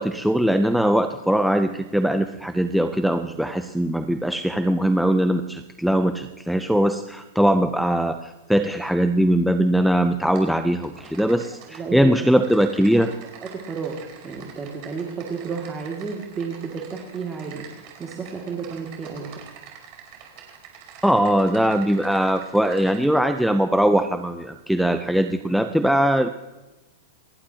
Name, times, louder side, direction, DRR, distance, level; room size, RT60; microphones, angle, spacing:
voice 1, 0.0-13.1 21.0-26.3, right 1 dB, ahead, 7 dB, 0.6 m, -21 dB
Typing, 10.3-10.5 10.8-11.8 12.3-23.1, right 8 dB, 45° right, 5.2 m, -45 dB
voice 2, 11.7-12.1 13.0-13.1 13.4-13.9 14.2-19.4, right 5 dB, 15° right, -1 dB, 2.3 m, -32 dB
29.5 x 11.5 x 2.9 m, 1.1 s
supercardioid pair, 150°, 0 cm